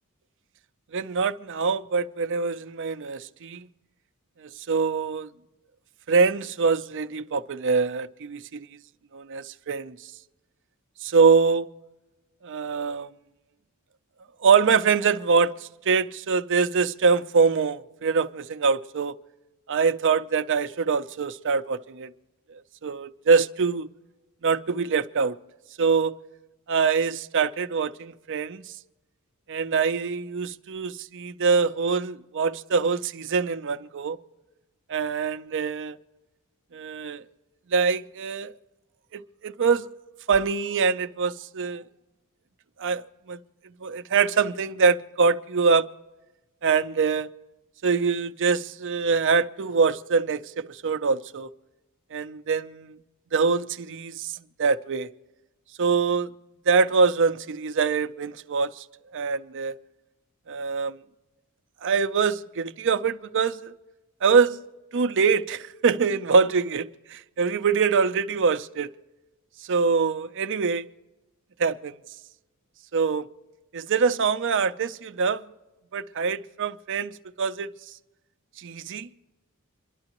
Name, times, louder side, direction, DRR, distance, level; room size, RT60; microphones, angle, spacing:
voice 1, 0.9-3.7 4.4-5.3 6.1-8.7 9.1-10.0 11.0-11.7 12.4-13.1 14.4-19.2 19.7-22.1 22.8-23.9 24.4-25.4 25.8-26.2 26.7-28.7 29.5-34.2 34.9-36.0 36.7-37.2 37.7-38.5 39.1-39.9 40.3-41.8 42.8-43.0 43.3-43.4 43.8-45.9 46.6-47.3 47.8-51.5 52.1-53.0 53.3-54.3 54.6-55.1 55.8-56.3 56.7-58.8 59.1-59.7 60.5-61.0 61.8-63.7 64.2-64.6 64.9-68.9 69.7-70.9 71.6-71.9 72.9-73.3 73.7-75.4 75.9-77.7 78.6-79.1, right 5 dB, 55° right, 0.5 m, -24 dB
27.5 x 11.5 x 3.0 m
head